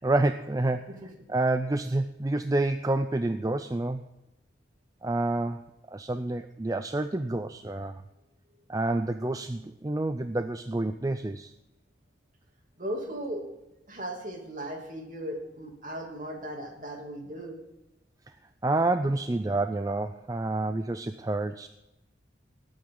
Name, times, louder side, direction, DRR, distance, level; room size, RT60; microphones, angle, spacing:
voice 1, 0.0-0.9 1.3-4.0 5.0-5.6 5.9-8.0 8.7-11.5 18.6-21.7, right 2 dB, 20° right, 9 dB, 0.4 m, -28 dB
voice 2, 12.8-13.5 13.9-17.6, right 1 dB, 45° right, 1 dB, 2.8 m, -37 dB
20.0 x 8.8 x 3.8 m, 0.97 s
head